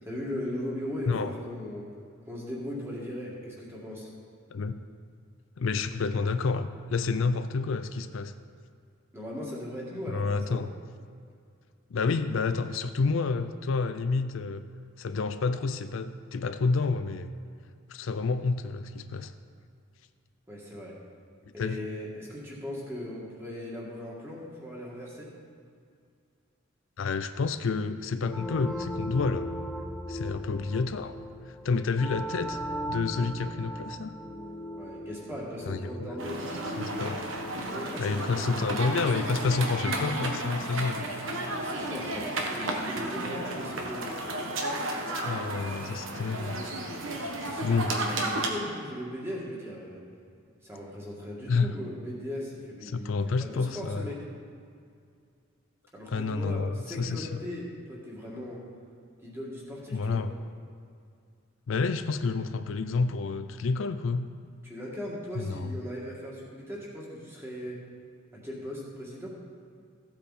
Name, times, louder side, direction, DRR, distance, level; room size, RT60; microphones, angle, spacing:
voice 1, 0.0-1.9 2.3-4.1 9.1-10.6 20.5-21.0 21.5-25.3 34.8-36.5 37.6-38.5 41.5-44.2 47.1-50.0 50.6-53.1 53.4-54.3 55.9-58.6 59.2-60.2 64.6-67.8 68.3-69.3, left 1 dB, 10° right, -4 dB, 2.1 m, -38 dB
voice 2, 4.5-4.8 5.6-8.3 10.1-10.7 11.9-14.7 15.0-17.3 17.9-19.3 21.6-21.9 27.0-29.5 30.1-31.2 31.5-32.6 32.9-34.1 35.7-36.1 36.8-37.2 38.0-41.0 45.2-46.6 47.4-48.0 51.5-51.7 52.9-54.1 56.1-57.4 59.9-60.3 61.7-64.3 65.4-65.7, left 4 dB, 70° left, 10 dB, 0.4 m, -29 dB
sound 1, 28.3-38.7, equal, 5° left, 0.6 m, -38 dB
sound 2, 36.2-48.5, right 1 dB, 65° right, 1.3 m, -33 dB
14.5 x 8.1 x 4.2 m, 2.3 s
head